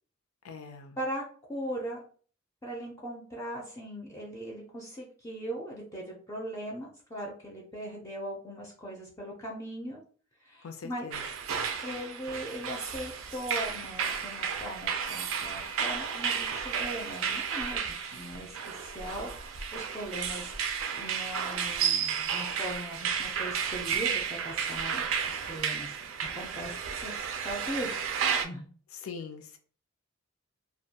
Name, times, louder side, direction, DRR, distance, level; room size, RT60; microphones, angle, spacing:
voice 1, 0.4-1.0 10.6-11.2 29.0-29.6, left 5 dB, 85° left, 7 dB, 0.5 m, -42 dB
voice 2, 1.5-2.0 2.6-10.0 10.4-11.1 11.8-19.3 19.7-20.5 20.9-25.9 26.3-28.0 28.4-28.7, right 1 dB, 15° left, -2 dB, 0.4 m, -39 dB
sound 1, 11.1-28.4, right 7 dB, 70° right, 0.4 m, -32 dB
2.3 x 2.2 x 2.7 m, 0.43 s
head